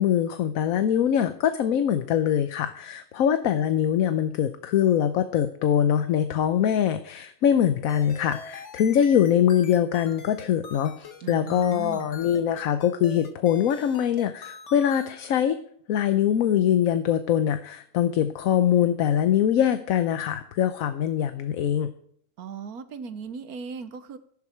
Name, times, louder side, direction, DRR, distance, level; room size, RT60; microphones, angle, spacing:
voice 1, 0.0-15.6 15.9-21.9, left 9 dB, 75° left, 10 dB, 1.1 m, -23 dB
sound 1, 7.9-15.1, left 4 dB, 55° left, 1.5 m, -44 dB
voice 2, 11.2-12.1 22.4-24.2, right 6 dB, 85° right, 11 dB, 1.5 m, -37 dB
15.0 x 11.0 x 4.4 m, 0.64 s
omnidirectional pair, 1.5 m